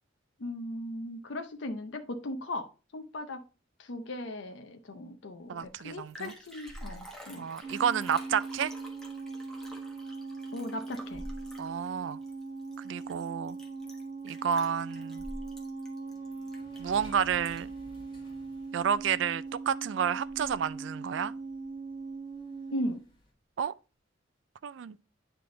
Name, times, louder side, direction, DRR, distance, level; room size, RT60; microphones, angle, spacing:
voice 1, 0.4-3.4 3.8-7.4 10.5-11.3 22.7-23.0, left 1 dB, 65° left, 0.6 m, -38 dB
voice 2, 5.5-6.3 7.4-8.7 11.6-12.2 12.8-13.6 14.2-15.2 16.8-17.7 18.7-21.3 23.6-23.7 24.6-25.0, right 8 dB, 70° right, 0.3 m, -30 dB
Liquid, 5.6-5.7 5.9-17.8 18.3-18.4, equal, 5° left, 1.2 m, -48 dB
sound 1, 7.6-23.0, right 3 dB, 45° right, 1.8 m, -40 dB
sound 2, 16.0-20.7 21.1-21.2 21.4-21.7 22.0-22.1 23.0-23.3, left 1 dB, 25° left, 1.5 m, -54 dB
9.4 x 3.4 x 3.8 m
head